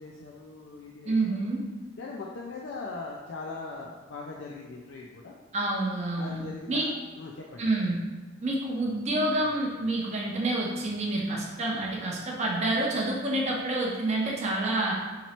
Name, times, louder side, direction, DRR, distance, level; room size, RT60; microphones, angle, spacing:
voice 1, 0.0-1.4 2.0-5.3 6.2-7.6, left 3 dB, 60° left, -2 dB, 0.4 m, -40 dB
voice 2, 1.1-1.6 5.5-6.9 7.6-8.0 8.4-15.0, right 2 dB, 35° right, -3 dB, 0.6 m, -28 dB
3.0 x 2.9 x 4.2 m, 1.3 s
head